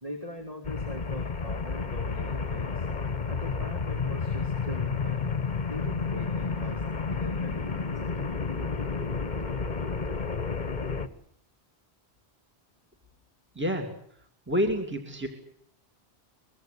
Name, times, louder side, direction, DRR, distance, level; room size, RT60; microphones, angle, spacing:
voice 1, 0.0-2.9 3.3-8.1, equal, 35° right, 3 dB, 2.9 m, -41 dB
sound 1, 0.6-11.1, left 5 dB, 45° left, 1.4 m, -31 dB
voice 2, 13.5-13.9 14.5-15.3, equal, 10° right, 4 dB, 2.6 m, -28 dB
23.5 x 22.5 x 8.3 m, 0.68 s
omnidirectional pair, 1.1 m